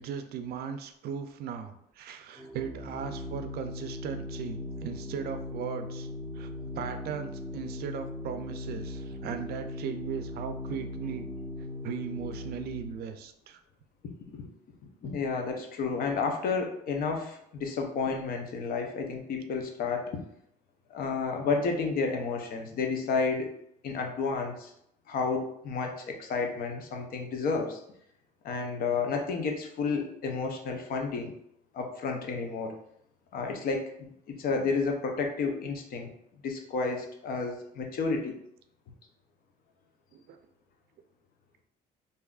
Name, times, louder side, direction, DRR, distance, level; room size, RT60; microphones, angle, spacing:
voice 1, 0.0-6.1 6.3-11.3 11.8-13.6 40.1-40.4, right 7 dB, 70° right, 8 dB, 0.4 m, -38 dB
Organ, 2.4-13.1, left 1 dB, 15° left, 0.9 m, -39 dB
voice 2, 15.0-20.2 20.9-23.5 23.8-24.7 25.1-27.8 28.4-31.3 31.7-32.8 33.3-36.1 36.4-38.4, left 4 dB, 60° left, 3 dB, 0.6 m, -31 dB
3.5 x 2.6 x 2.4 m, 0.72 s
cardioid pair, 110°, 17 cm